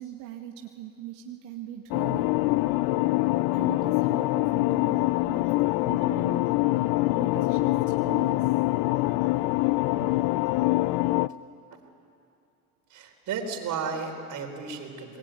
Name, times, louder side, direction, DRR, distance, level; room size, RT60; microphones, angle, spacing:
voice 1, 0.0-2.3 3.5-5.5 5.8-6.6 7.1-8.8 9.6-10.1, right 12 dB, 85° right, 2 dB, 2.0 m, -41 dB
sound 1, 1.9-11.3, left 19 dB, 70° left, 0.6 m, -24 dB
voice 2, 12.9-15.2, right 5 dB, 55° right, 4 dB, 4.3 m, -33 dB
27.5 x 20.0 x 9.2 m, 2.6 s
cardioid pair, 115°, 36 cm